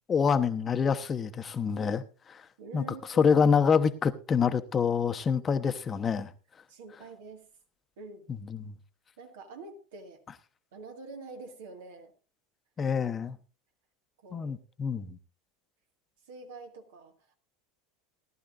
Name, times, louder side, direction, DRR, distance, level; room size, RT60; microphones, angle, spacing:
voice 1, 0.1-2.4 2.7-2.8 3.2-6.3 8.5-8.7 12.8-13.4 14.3-15.2, left 6 dB, 30° left, 0.9 m, -26 dB
voice 2, 2.6-3.4 6.7-7.5 8.0-8.3 9.2-10.2 10.7-12.1 14.2-14.5 16.2-17.3, right 3 dB, 70° right, 1.9 m, -46 dB
18.0 x 12.0 x 2.5 m
hypercardioid pair, 80°, 0 cm